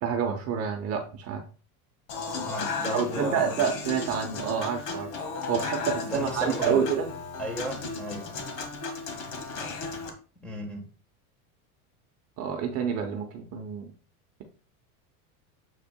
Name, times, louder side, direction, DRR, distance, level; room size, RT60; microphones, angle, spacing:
voice 1, 0.0-1.4 2.9-5.1 5.5-7.1 12.4-13.9, right 7 dB, 35° right, 0.8 m, -28 dB
Human voice / Acoustic guitar / Piano, 2.1-10.1, left 4 dB, 70° left, 1.8 m, -35 dB
voice 2, 2.4-3.7 6.0-6.9 7.4-8.4 10.4-10.8, equal, 5° left, 1.3 m, -35 dB
7.5 x 5.6 x 2.2 m
supercardioid pair, 160°, 44 cm